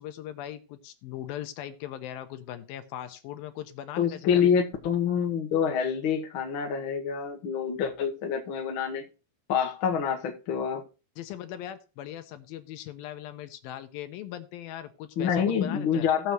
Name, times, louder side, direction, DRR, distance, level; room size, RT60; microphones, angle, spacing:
voice 1, 0.0-4.5 11.2-16.1, left 11 dB, 85° left, 2.6 m, -39 dB
voice 2, 4.0-9.0 9.5-10.8 15.2-16.3, left 7 dB, 60° left, 1.3 m, -27 dB
17.5 x 6.8 x 3.1 m
omnidirectional pair, 4.2 m